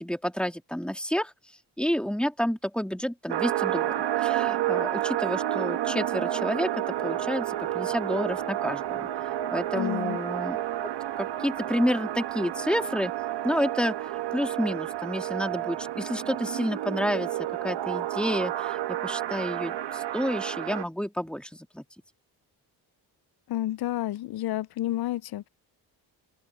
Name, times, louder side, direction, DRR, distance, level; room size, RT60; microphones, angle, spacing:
voice 1, 0.0-1.3 1.8-10.6 11.2-13.1 13.4-17.4 17.6-21.8, equal, ahead, 2.9 m, -30 dB
sound 1, 3.3-20.8, right 13 dB, 75° right, 1.5 m, -30 dB
voice 2, 9.8-10.2 23.5-25.5, left 14 dB, 60° left, 0.6 m, -30 dB
open air
supercardioid pair, 60°, 42 cm